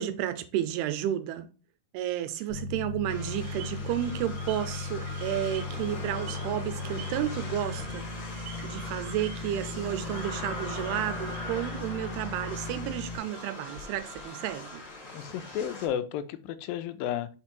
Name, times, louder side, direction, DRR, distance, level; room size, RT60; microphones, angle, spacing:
voice 1, 0.0-1.5 1.9-8.1 8.6-14.8, right 12 dB, 85° right, 2.7 m, -32 dB
sound 1, 2.5-13.2, left 3 dB, 20° left, 1.3 m, -37 dB
sound 2, 3.1-15.9, left 2 dB, 35° left, 1.3 m, -41 dB
sound 3, 3.4-12.6, right 7 dB, 60° right, 2.1 m, -50 dB
voice 2, 15.1-17.3, left 10 dB, 85° left, 2.0 m, -32 dB
6.1 x 4.4 x 4.4 m
omnidirectional pair, 4.6 m